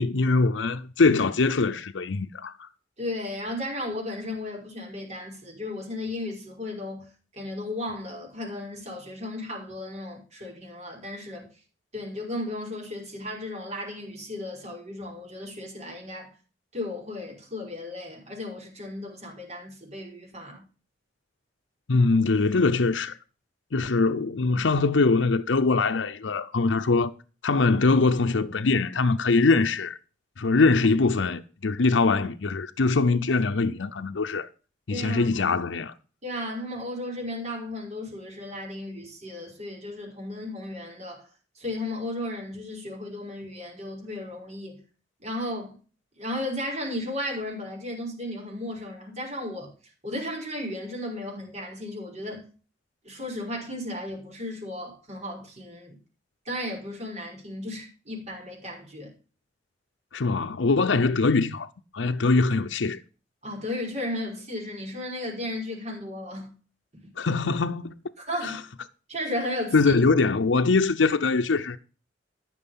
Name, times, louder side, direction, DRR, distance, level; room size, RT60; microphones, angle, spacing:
voice 1, 0.0-2.7 21.9-23.2 23.7-27.1 27.4-30.0 30.4-34.5 34.9-35.9 60.1-61.7 61.9-63.0 67.2-67.9 68.4-68.5 69.7-71.8, left 3 dB, 90° left, 0.7 m, -22 dB
voice 2, 3.0-11.5 11.9-16.3 16.7-20.6 34.9-35.5 36.2-41.3 41.6-44.8 45.2-45.8 46.2-49.7 50.0-52.5 53.0-56.0 56.5-59.1 63.4-66.5 68.2-68.7 69.1-69.9, left 1 dB, 40° right, 5.2 m, -35 dB
14.0 x 6.2 x 5.6 m
head